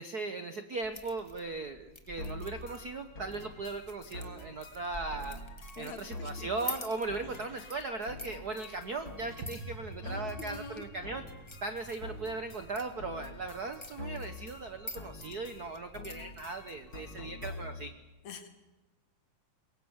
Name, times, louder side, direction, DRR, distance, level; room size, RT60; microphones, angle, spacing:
voice 1, 0.0-5.4 5.8-11.2 11.6-17.9, right 3 dB, 80° right, 8 dB, 0.8 m, -38 dB
sound 1, 0.8-17.0, left 2 dB, 20° left, 0.8 m, -49 dB
sound 2, 2.2-17.9, left 2 dB, 40° left, 3.6 m, -46 dB
voice 2, 5.8-6.7 10.0-10.9 18.2-18.5, left 4 dB, 65° left, 7 dB, 3.2 m, -46 dB
sound 3, 9.4-17.7, right 3 dB, 40° right, 1.6 m, -52 dB
24.5 x 22.0 x 8.1 m, 1.1 s
omnidirectional pair, 3.5 m